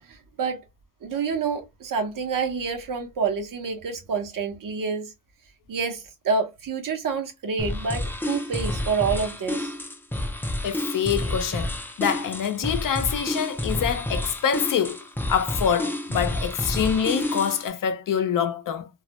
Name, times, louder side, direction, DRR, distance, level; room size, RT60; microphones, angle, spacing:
voice 1, 0.1-0.6 1.0-5.1 5.7-9.7, right 5 dB, 65° right, 0.8 m, -28 dB
sound 1, 7.6-17.7, left 1 dB, 5° left, 0.4 m, -29 dB
voice 2, 10.6-11.7 12.0-15.0 15.3-18.9, left 8 dB, 65° left, 0.5 m, -25 dB
2.3 x 2.0 x 2.8 m
cardioid pair, 85°, 35 cm